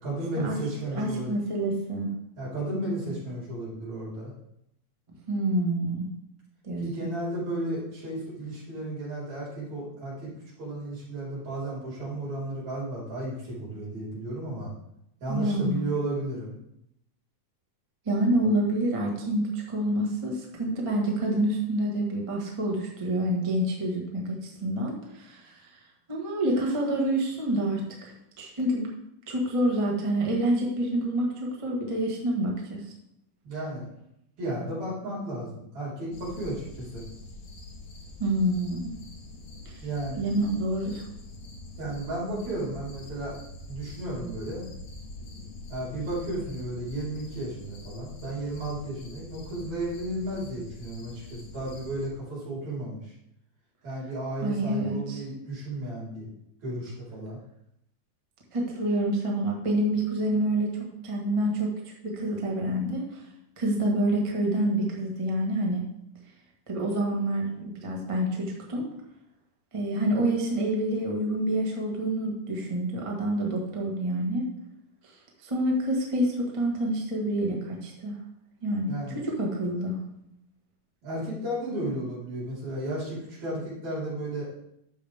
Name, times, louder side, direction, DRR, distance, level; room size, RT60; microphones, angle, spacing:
voice 1, 0.0-1.4 2.4-4.3 6.8-10.3 10.6-14.7 15.2-16.5 33.4-33.9 34.4-37.0 39.8-40.2 41.8-43.3 43.7-44.6 45.7-53.1 53.8-56.3 56.6-57.4 78.9-79.2 81.0-84.5, right 1 dB, 60° right, -7 dB, 5.6 m, -33 dB
voice 2, 0.8-2.2 5.3-6.1 6.6-7.1 15.3-15.8 18.0-25.5 26.1-28.9 29.3-32.8 38.2-38.8 39.6-39.8 40.2-41.0 54.4-55.2 58.5-63.2 63.6-65.8 66.7-68.8 69.7-74.4 75.4-78.1 78.6-80.0, right 1 dB, 30° right, -1 dB, 0.5 m, -27 dB
sound 1, 36.1-52.1, left 2 dB, 60° left, 2.3 m, -44 dB
11.0 x 7.1 x 3.6 m, 0.78 s
omnidirectional pair, 3.7 m